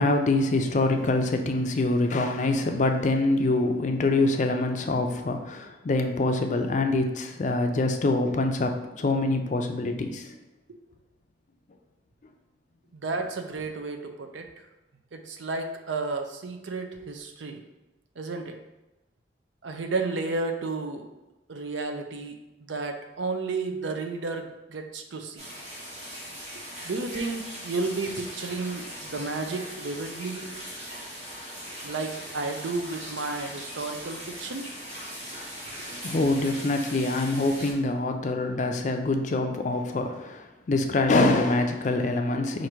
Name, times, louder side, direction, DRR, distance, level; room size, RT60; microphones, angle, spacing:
voice 1, 0.0-10.3 35.8-42.7, left 2 dB, 40° left, 5 dB, 0.4 m, -25 dB
voice 2, 12.9-14.5 15.1-17.6 18.2-18.6 19.6-21.1 21.5-25.5 26.5-30.5 31.8-34.7, right 3 dB, 75° right, 5 dB, 0.5 m, -32 dB
sound 1, 25.4-37.7, equal, 35° right, 1.1 m, -40 dB
4.7 x 2.6 x 4.4 m, 1.0 s
head